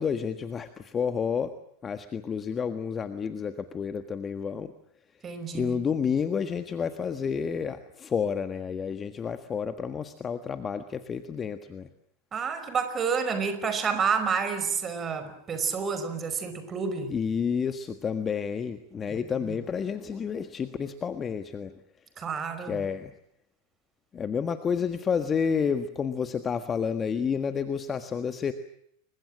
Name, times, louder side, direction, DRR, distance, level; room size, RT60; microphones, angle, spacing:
voice 1, 0.0-1.5 1.8-4.7 5.5-11.9 17.1-21.7 22.6-23.1 24.1-28.5, left 6 dB, 25° left, 9 dB, 1.6 m, -30 dB
voice 2, 5.2-5.7 12.3-17.1 19.1-19.2 19.4-19.6 22.2-22.8, right 6 dB, 25° right, 10 dB, 5.2 m, -29 dB
29.5 x 23.5 x 7.6 m, 0.72 s
figure-of-eight pair, 90°, 0 cm